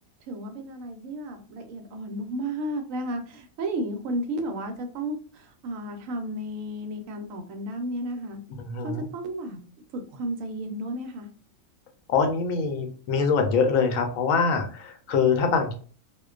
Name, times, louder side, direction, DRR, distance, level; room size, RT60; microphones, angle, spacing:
voice 1, 0.3-8.4 8.8-9.6 9.9-11.3, right 1 dB, 75° right, 5 dB, 1.0 m, -33 dB
voice 2, 8.6-9.0 12.1-15.7, left 5 dB, 80° left, 5 dB, 1.0 m, -24 dB
2.4 x 2.1 x 2.3 m, 0.41 s
omnidirectional pair, 1.4 m